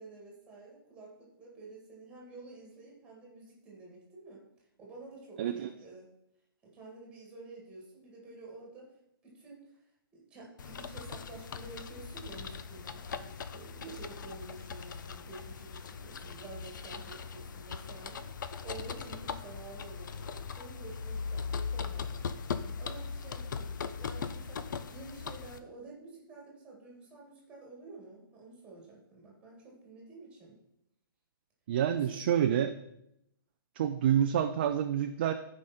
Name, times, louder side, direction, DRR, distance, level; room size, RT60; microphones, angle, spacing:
voice 1, 0.0-4.4 4.8-6.1 6.6-8.9 9.2-9.6 10.1-18.3 18.6-22.3 22.6-30.6 31.9-32.2, right 3 dB, 10° right, -2 dB, 2.0 m, -50 dB
voice 2, 5.4-5.7 31.7-32.7 33.8-35.3, right 9 dB, 25° right, 6 dB, 0.4 m, -28 dB
sound 1, 10.6-25.6, left 6 dB, 55° left, 0.6 m, -40 dB
14.0 x 5.1 x 4.3 m, 0.79 s
hypercardioid pair, 165°, 12 cm